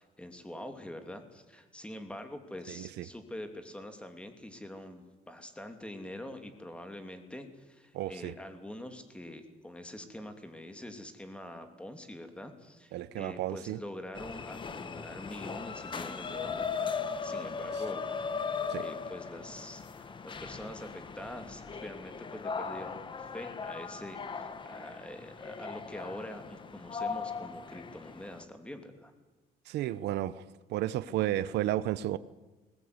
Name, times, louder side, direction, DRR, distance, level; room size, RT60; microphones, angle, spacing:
voice 1, 0.0-18.0 18.8-29.1, left 1 dB, 5° left, 2.9 m, -45 dB
voice 2, 2.7-3.0 7.9-8.3 12.9-13.8 18.7-18.8 29.7-30.4 30.7-32.2, right 13 dB, 85° right, 0.8 m, -32 dB
sound 1, 14.1-28.4, left 5 dB, 30° left, 1.5 m, -38 dB
20.5 x 19.5 x 9.7 m
cardioid pair, 140°, 17 cm